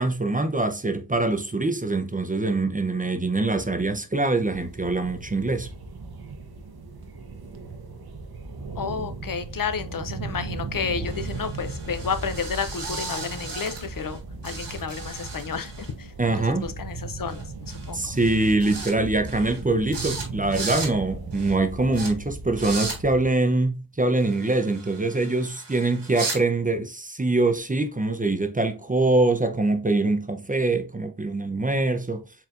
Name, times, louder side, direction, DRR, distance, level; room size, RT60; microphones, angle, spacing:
voice 1, 0.0-5.7 16.2-16.7 17.9-32.2, right 2 dB, 20° right, 0.5 m, -24 dB
sound 1, 4.4-23.2, right 3 dB, 60° right, 0.8 m, -37 dB
voice 2, 8.8-18.1, left 6 dB, 55° left, 0.5 m, -31 dB
sound 2, 11.1-14.2 14.4-15.9 17.3-17.4 17.7-17.9 18.2-18.9 19.2-19.6 19.9-20.2 20.5-20.9 21.3-21.5 21.9-22.1 22.5-23.0 24.2-26.4, right 3 dB, 90° right, 1.6 m, -36 dB
4.4 x 3.3 x 2.4 m
cardioid pair, 45°, 42 cm